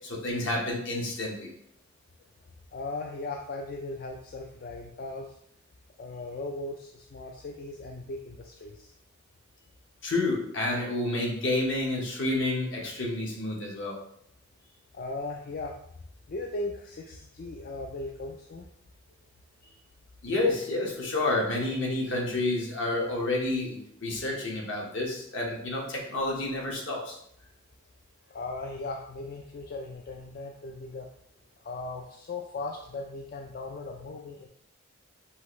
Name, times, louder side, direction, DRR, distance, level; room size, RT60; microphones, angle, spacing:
voice 1, 0.0-1.5 10.0-14.0 20.2-27.2, left 2 dB, 65° left, -1 dB, 1.1 m, -29 dB
voice 2, 2.7-5.4 6.0-8.9 14.6-15.8 16.3-18.7 19.6-19.8 28.3-31.1 31.6-34.5, left 2 dB, 45° left, 1 dB, 0.3 m, -38 dB
5.5 x 2.6 x 3.1 m, 0.71 s
head